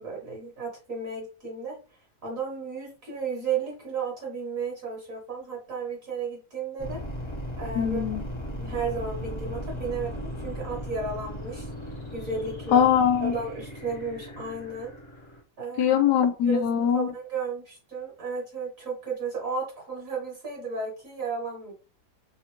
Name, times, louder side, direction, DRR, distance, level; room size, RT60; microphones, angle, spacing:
voice 1, 0.0-1.8 2.2-7.0 7.6-8.0 8.5-11.7 12.1-12.9 13.2-14.9 15.6-15.9 16.4-16.6 16.9-21.7, right 4 dB, 55° right, 1.5 m, -33 dB
sound 1, 6.8-15.4, equal, 25° left, 0.7 m, -37 dB
voice 2, 7.8-8.2 12.7-13.4 15.8-17.1, left 8 dB, 80° left, 1.2 m, -22 dB
3.5 x 2.4 x 2.9 m
omnidirectional pair, 1.8 m